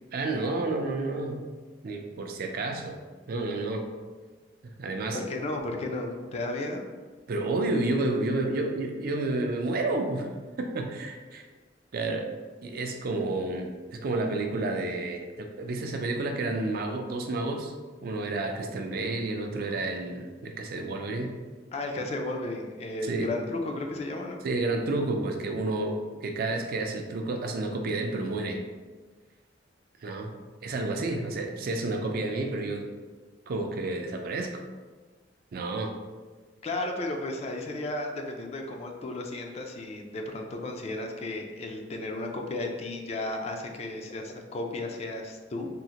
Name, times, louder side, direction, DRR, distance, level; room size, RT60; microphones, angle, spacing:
voice 1, 0.1-1.5 1.8-3.0 3.3-3.8 4.8-5.2 7.3-10.3 10.6-11.4 11.9-12.3 12.6-17.7 18.0-21.3 23.0-23.3 24.4-28.6 30.0-30.3 30.6-32.9 33.5-34.6 35.5-35.9, right 2 dB, 55° right, 4 dB, 0.4 m, -30 dB
voice 2, 5.1-6.9 21.7-24.4 36.6-45.7, left 2 dB, 35° left, 3 dB, 0.3 m, -34 dB
3.6 x 2.0 x 2.8 m, 1.4 s
head